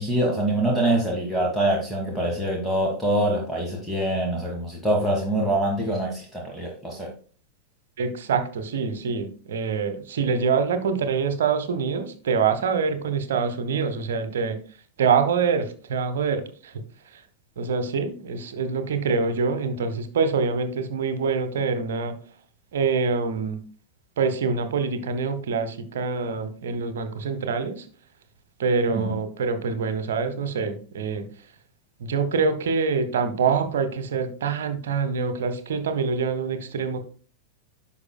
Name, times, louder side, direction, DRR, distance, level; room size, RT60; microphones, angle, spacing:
voice 1, 0.0-7.1 28.9-29.1, right 1 dB, ahead, -2 dB, 1.5 m, -24 dB
voice 2, 8.0-14.6 15.0-16.7 17.1-17.2 17.6-22.1 22.7-23.6 24.2-27.9 28.6-31.3 32.0-37.0, right 5 dB, 60° right, 9 dB, 1.0 m, -25 dB
9.8 x 5.7 x 2.2 m, 0.40 s
figure-of-eight pair, 90°, 0 cm